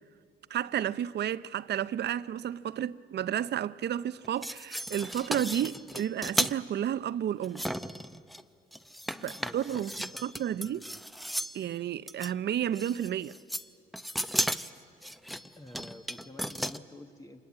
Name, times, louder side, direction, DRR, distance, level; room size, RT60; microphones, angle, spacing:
voice 1, 0.5-7.6 9.2-10.8 11.5-13.3, right 10 dB, 60° right, 0.6 m, -32 dB
sound 1, 4.2-6.6 7.4-8.4 8.7-11.6 12.1-12.3 12.8-13.7 13.9-16.8, equal, ahead, 0.6 m, -35 dB
voice 2, 9.1-10.8 15.6-17.5, left 1 dB, 15° left, 1.1 m, -50 dB
25.0 x 20.5 x 8.6 m
cardioid pair, 90°, 20 cm